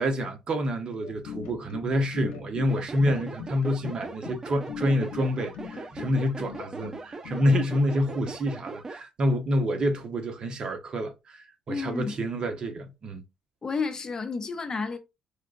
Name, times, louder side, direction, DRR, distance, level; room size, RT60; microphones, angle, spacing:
voice 1, 0.0-13.2, equal, 50° right, 0.9 m, -28 dB
sound 1, 1.0-7.9, left 7 dB, 85° left, 0.7 m, -40 dB
sound 2, 2.7-9.0, right 3 dB, 30° right, 0.5 m, -40 dB
voice 2, 11.7-12.1 13.6-15.0, left 4 dB, 35° left, 0.7 m, -31 dB
4.6 x 2.4 x 2.5 m
supercardioid pair, 80°, 2 cm